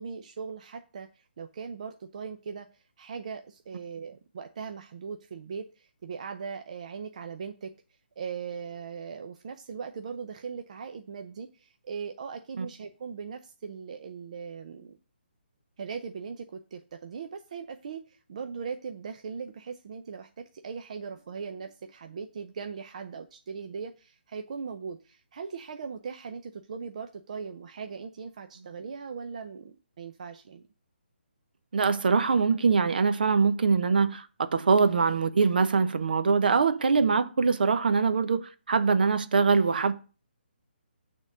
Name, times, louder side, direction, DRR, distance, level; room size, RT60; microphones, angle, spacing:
voice 1, 0.0-7.7 8.2-15.0 15.8-30.6, right 6 dB, 40° right, 0.6 m, -39 dB
voice 2, 31.7-39.9, right 5 dB, 60° right, 0.9 m, -23 dB
9.0 x 3.7 x 6.6 m
hypercardioid pair, 170°, 6 cm